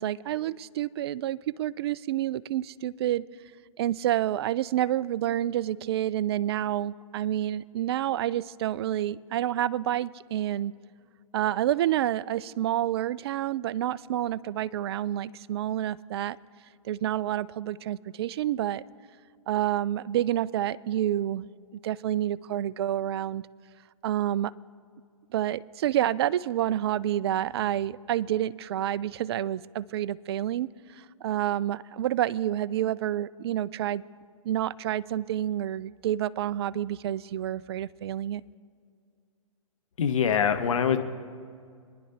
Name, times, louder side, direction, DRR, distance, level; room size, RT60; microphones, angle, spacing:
voice 1, 0.0-3.2 3.8-10.7 11.3-16.4 16.8-18.8 19.5-21.5 21.8-23.4 24.0-24.5 25.3-34.0 34.4-38.4, right 12 dB, 45° right, 19 dB, 0.4 m, -28 dB
voice 2, 40.0-41.0, left 7 dB, 65° left, 8 dB, 1.1 m, -24 dB
28.5 x 10.5 x 2.8 m, 2.2 s
hypercardioid pair, 125°, 18 cm